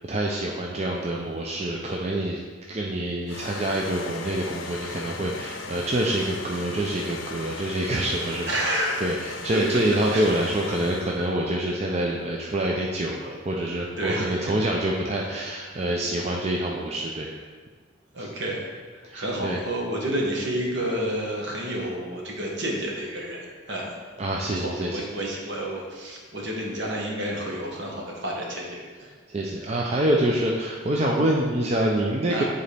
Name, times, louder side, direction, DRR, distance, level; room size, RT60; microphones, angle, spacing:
voice 1, 0.1-2.4 2.7-17.3 18.2-18.3 19.0-19.6 24.2-25.0 29.3-32.4, right 1 dB, 35° right, -2 dB, 0.5 m, -26 dB
sound 1, 3.3-11.4, left 4 dB, 85° left, 0.5 m, -38 dB
voice 2, 8.5-9.0 9.5-9.8 10.1-10.2 14.0-14.3 15.8-15.9 18.1-18.6 18.9-23.9 24.5-28.8 32.3-32.4, right 1 dB, 65° right, -2 dB, 1.3 m, -30 dB
8.9 x 4.0 x 3.4 m, 1.5 s
head